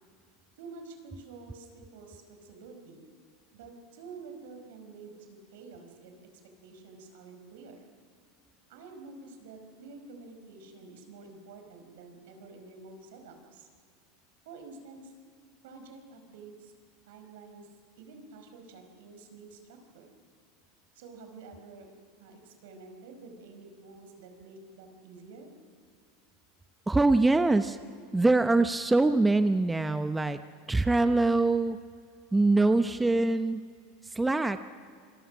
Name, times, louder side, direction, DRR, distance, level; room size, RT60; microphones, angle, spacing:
voice 1, 0.6-3.0 3.5-6.3 6.6-7.9 8.7-13.7 14.4-15.1 15.6-16.7 17.1-17.7 18.0-20.1 20.9-21.9 22.2-25.5, right 4 dB, 75° right, 5 dB, 4.8 m, -49 dB
voice 2, 26.9-27.8 28.1-30.4 30.7-31.8 32.3-33.6 34.0-34.6, right 2 dB, 10° right, 9 dB, 0.8 m, -24 dB
26.5 x 22.5 x 6.2 m, 2.2 s
supercardioid pair, 115°, 0 cm